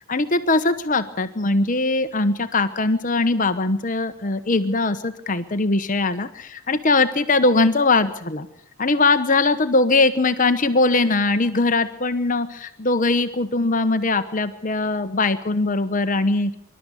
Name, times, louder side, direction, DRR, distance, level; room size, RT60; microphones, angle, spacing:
voice 1, 0.1-8.5 8.8-16.6, left 3 dB, 35° left, 9 dB, 1.0 m, -21 dB
25.5 x 12.5 x 8.4 m, 0.72 s
head